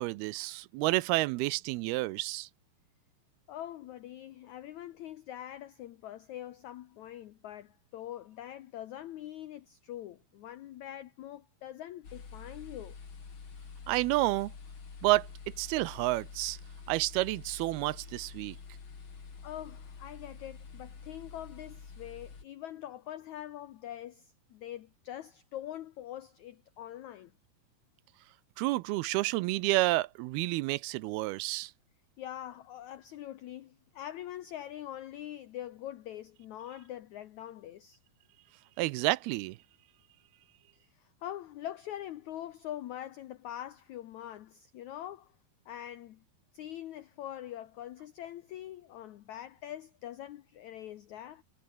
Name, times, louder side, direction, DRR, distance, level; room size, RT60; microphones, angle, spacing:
voice 1, 0.0-2.5 13.9-14.5 15.0-15.3 15.6-16.6 16.9-18.6 28.6-31.7 38.8-39.6, right 19 dB, 85° right, 2.5 m, -30 dB
voice 2, 3.5-13.0 19.4-27.3 32.2-38.0 40.9-45.3 45.7-46.2 46.5-51.4, left 12 dB, 85° left, 1.6 m, -43 dB
sound 1, 12.0-22.4, left 5 dB, 35° left, 3.3 m, -48 dB
omnidirectional pair, 4.6 m